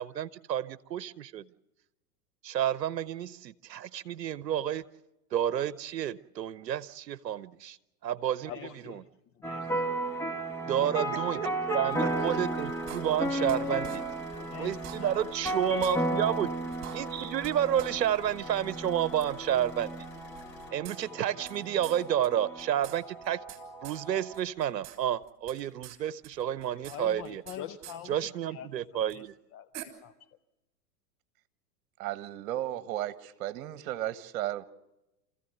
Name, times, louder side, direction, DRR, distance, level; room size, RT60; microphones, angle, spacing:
voice 1, 0.0-1.5 2.4-4.8 5.3-7.5 8.0-8.5 8.9-9.0 10.7-11.4 11.7-14.0 14.6-16.5 16.9-19.9 20.7-23.4 23.8-27.4 28.1-29.4, right 10 dB, 80° right, 0.9 m, -30 dB
voice 2, 8.4-9.0 9.3-9.8 13.3-13.7 14.4-15.2 15.6-15.8 26.7-29.7 30.0-30.3, left 9 dB, 30° left, 0.7 m, -45 dB
sound 1, 9.4-24.4, right 1 dB, 5° left, 1.4 m, -34 dB
voice 3, 10.8-12.4 32.0-34.6, right 12 dB, 55° right, 1.4 m, -35 dB
Car / Idling, 11.9-20.7, left 7 dB, 85° left, 4.3 m, -52 dB
sound 2, 12.9-13.6 13.8-14.0 14.3-14.4 14.7-15.5 15.8-15.9 16.3-16.4 16.7-17.5 17.8-17.9 18.3-18.4 19.2-19.3 20.4-21.6 21.8-22.0 22.2-22.3 22.6-23.6 23.8-24.0 24.3-25.0 25.2-26.0 26.2-27.6 27.8-28.0 29.1-29.2 29.7-29.8, right 14 dB, 30° right, 3.6 m, -45 dB
27.5 x 15.0 x 7.9 m
hypercardioid pair, 110°, 49 cm